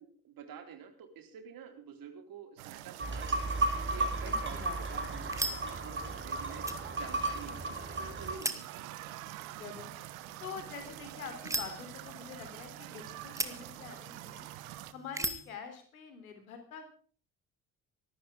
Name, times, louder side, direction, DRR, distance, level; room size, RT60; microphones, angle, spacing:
voice 1, 0.0-3.6 3.9-6.6 6.9-9.1, right 7 dB, 50° right, 5 dB, 4.0 m, -49 dB
sound 1, 2.6-14.9, right 15 dB, 70° right, 1.2 m, -47 dB
sound 2, 3.0-8.3, right 2 dB, 25° right, 5.3 m, -34 dB
voice 2, 4.2-5.0 9.5-9.9 10.4-14.5 14.9-16.9, left 6 dB, 80° left, 7 dB, 3.5 m, -46 dB
sound 3, 4.2-15.6, right 1 dB, 5° right, 2.0 m, -42 dB
24.0 x 12.5 x 3.6 m, 0.42 s
figure-of-eight pair, 50°, 42 cm